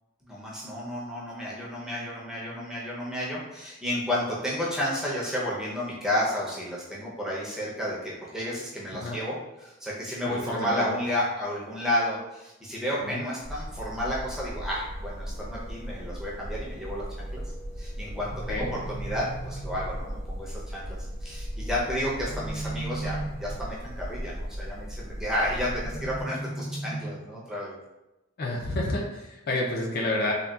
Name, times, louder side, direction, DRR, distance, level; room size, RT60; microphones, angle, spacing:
voice 1, 0.2-17.4 17.8-27.8, left 1 dB, 5° right, -6 dB, 0.5 m, -32 dB
voice 2, 10.2-10.9 13.0-13.2 18.5-18.7 28.4-30.3, left 2 dB, 45° left, -1 dB, 0.4 m, -29 dB
sound 1, 13.4-26.2, equal, 30° right, 0.8 m, -37 dB
sound 2, 18.1-20.1 21.8-23.8 25.5-27.5, right 2 dB, 55° right, 0.6 m, -37 dB
3.6 x 2.2 x 2.2 m, 0.99 s
head